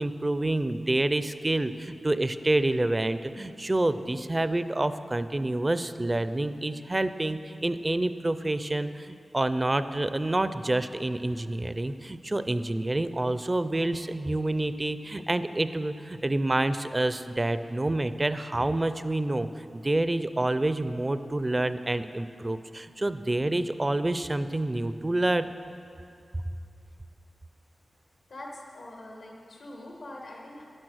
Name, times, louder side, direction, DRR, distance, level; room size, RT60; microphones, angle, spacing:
voice 1, 0.0-25.5, right 2 dB, 25° right, 12 dB, 0.4 m, -28 dB
voice 2, 28.3-30.6, left 1 dB, 85° left, -2 dB, 1.3 m, -43 dB
11.0 x 10.5 x 6.3 m, 2.6 s
wide cardioid pair, 120°, 0 cm